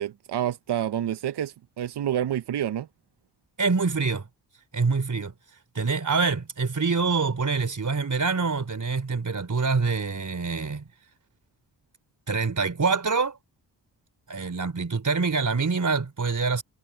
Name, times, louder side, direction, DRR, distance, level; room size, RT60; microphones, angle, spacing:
voice 1, 0.0-2.9, right 10 dB, 65° right, 1.1 m, -28 dB
voice 2, 3.6-4.3 4.7-5.3 5.8-10.9 12.3-13.4 14.3-16.6, right 4 dB, 45° right, 3.9 m, -25 dB
supercardioid pair, 40°, 44 cm